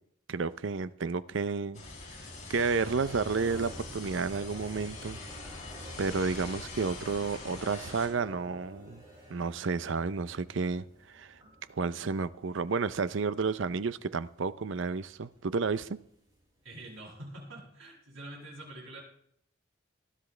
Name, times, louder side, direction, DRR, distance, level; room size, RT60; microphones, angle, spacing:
voice 1, 0.3-1.8 2.5-5.2 6.0-9.0 9.3-11.4 11.7-16.0, right 4 dB, 65° right, 0.5 m, -31 dB
sound 1, 1.7-8.1, left 2 dB, 35° left, 4.7 m, -43 dB
sound 2, 2.1-17.0, equal, 20° right, 6.1 m, -52 dB
voice 2, 16.6-19.0, right 1 dB, 85° right, 8.0 m, -45 dB
20.0 x 12.5 x 3.3 m
head